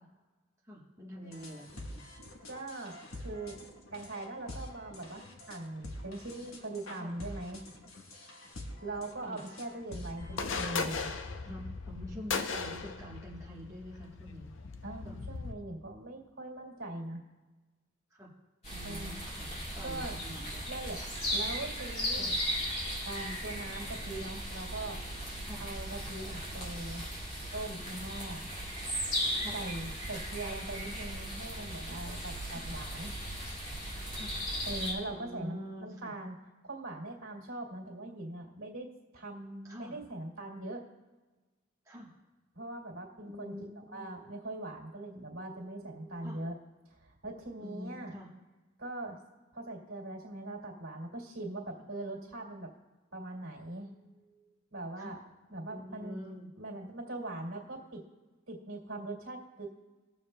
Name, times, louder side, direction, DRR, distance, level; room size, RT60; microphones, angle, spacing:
voice 1, 0.6-2.1 7.0-7.1 9.2-9.4 11.4-14.5 15.0-15.2 18.1-18.3 18.7-20.6 22.1-22.3 25.5-25.6 29.4-29.6 32.5-32.7 34.1-34.4 35.0-36.1 39.6-39.9 41.8-42.1 43.3-44.1 46.2-46.4 47.6-48.3 55.0-55.2 55.7-56.5, equal, 15° right, -5 dB, 1.2 m, -46 dB
sound 1, 1.2-10.8, left 1 dB, 85° left, 1.2 m, -47 dB
voice 2, 2.5-7.6 8.2-8.4 8.8-11.1 14.8-17.2 18.8-19.1 19.8-21.0 21.3-22.3 23.0-25.0 25.6-27.0 27.5-28.5 29.5-33.1 34.6-36.4 36.6-38.9 39.1-40.8 42.5-46.6 46.9-48.2 48.8-49.2 49.5-52.7 53.1-55.2 55.5-56.2 56.6-58.0 58.5-59.7, right 2 dB, 80° right, -3 dB, 2.2 m, -41 dB
sound 2, 10.2-15.5, left 4 dB, 65° left, 0.6 m, -38 dB
sound 3, 18.6-34.9, equal, 30° left, 2.3 m, -37 dB
21.5 x 7.1 x 2.2 m, 1.2 s
head